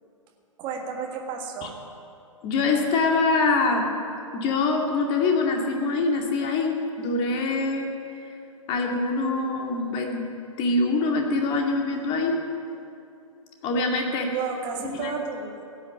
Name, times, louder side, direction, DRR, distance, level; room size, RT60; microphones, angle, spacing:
voice 1, 0.6-1.7 14.3-15.6, right 6 dB, 25° right, 1 dB, 1.8 m, -32 dB
voice 2, 2.4-3.9 4.3-7.9 8.7-10.2 10.6-12.4 13.6-14.4 14.8-15.2, left 3 dB, 30° left, 1 dB, 2.2 m, -24 dB
16.0 x 8.7 x 9.0 m, 2.6 s
figure-of-eight pair, 115°, 17 cm